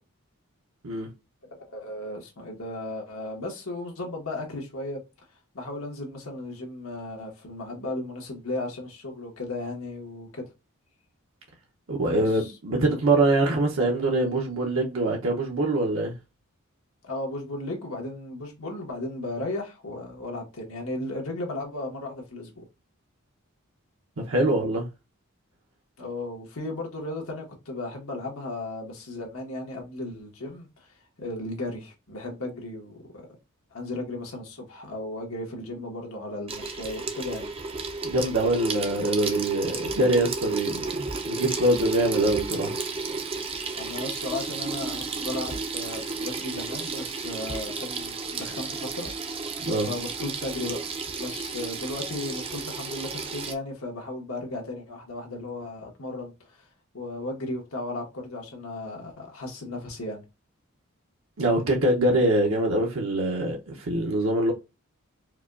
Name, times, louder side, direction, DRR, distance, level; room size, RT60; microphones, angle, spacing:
voice 1, 1.5-5.0 5.5-10.5 12.0-12.5 17.0-22.6 26.0-33.0 33.7-37.5 43.8-49.5 49.9-50.9 51.2-56.7 56.9-60.2, left 2 dB, 85° left, 1.3 m, -35 dB
voice 2, 11.9-16.2 24.2-24.9 38.0-42.7 49.6-49.9 61.4-64.5, right 1 dB, 70° right, 0.7 m, -24 dB
Water tap faucet / Sink (filling or washing), 36.5-53.5, right 4 dB, 25° right, 0.4 m, -33 dB
4.7 x 2.3 x 2.4 m
head